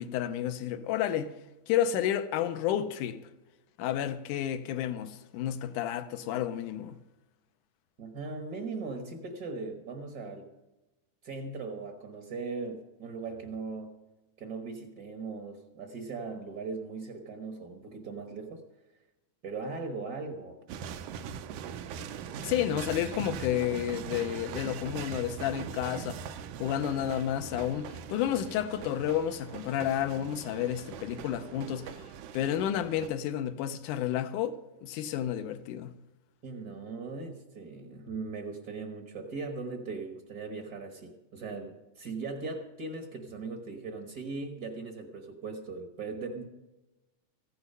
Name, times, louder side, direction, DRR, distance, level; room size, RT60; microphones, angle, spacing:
voice 1, 0.0-1.3 1.7-3.2 3.8-7.0 22.4-26.2 26.6-31.9 32.3-34.6 34.8-36.0, left 10 dB, 85° left, 2.2 m, -31 dB
voice 2, 8.0-10.5 11.2-13.9 14.4-18.6 19.4-20.6 36.4-46.4, right 4 dB, 60° right, 1.0 m, -39 dB
sound 1, 20.7-33.1, right 7 dB, 90° right, 2.2 m, -41 dB
15.0 x 10.5 x 5.5 m
omnidirectional pair, 3.6 m